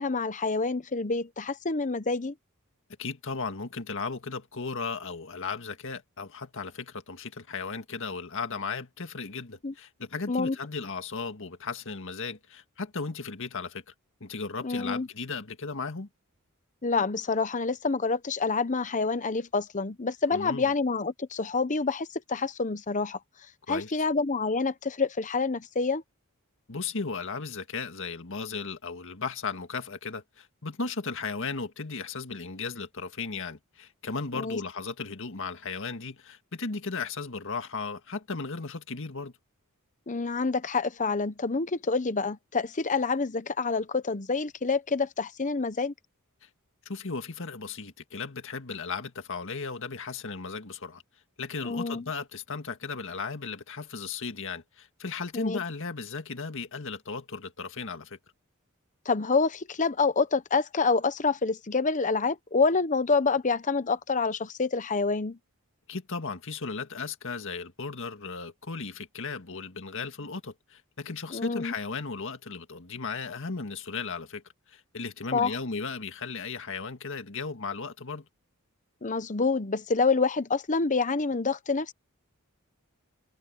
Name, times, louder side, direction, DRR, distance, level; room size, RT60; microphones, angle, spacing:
voice 1, 0.0-2.3 9.6-9.7 10.3-10.6 14.6-15.1 16.8-23.2 23.7-26.0 34.3-34.6 40.1-45.9 51.6-52.0 55.3-55.6 59.1-65.4 71.3-71.7 75.3-75.6 79.0-81.9, left 4 dB, 35° left, 0.9 m, -27 dB
voice 2, 3.0-13.9 14.2-16.1 20.3-20.7 23.7-23.9 26.7-39.3 46.4-46.5 46.9-51.0 51.4-58.2 65.9-74.4 74.7-78.3, left 4 dB, 60° left, 1.9 m, -36 dB
head